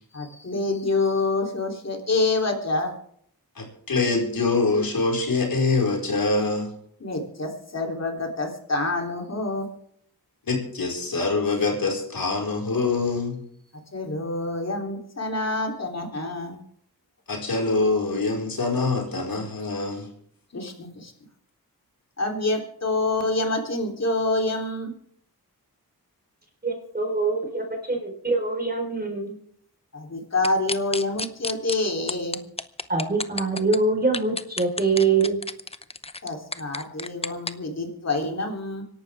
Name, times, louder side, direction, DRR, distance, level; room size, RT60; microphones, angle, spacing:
voice 1, 0.1-2.9 7.0-9.7 13.9-16.6 20.5-21.1 22.2-24.9 29.9-32.4 36.2-38.8, left 2 dB, 45° left, 2 dB, 3.5 m, -27 dB
voice 2, 3.5-6.7 10.5-13.4 17.3-20.1, left 3 dB, 65° left, 0 dB, 5.1 m, -24 dB
voice 3, 26.6-29.3 32.9-35.4, right 4 dB, 25° right, 2 dB, 4.4 m, -24 dB
sound 1, 30.4-31.8 32.1-33.8 34.1-37.5, left 3 dB, 15° left, 0.7 m, -30 dB
25.5 x 11.5 x 3.6 m, 0.67 s
wide cardioid pair, 85°, 37 cm